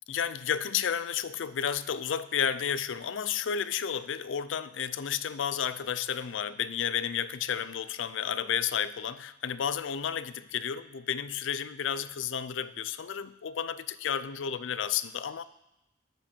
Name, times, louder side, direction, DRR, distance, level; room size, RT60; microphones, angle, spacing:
voice 1, 0.1-15.4, left 8 dB, 80° left, 16 dB, 0.5 m, -32 dB
10.0 x 5.3 x 7.0 m, 0.91 s
head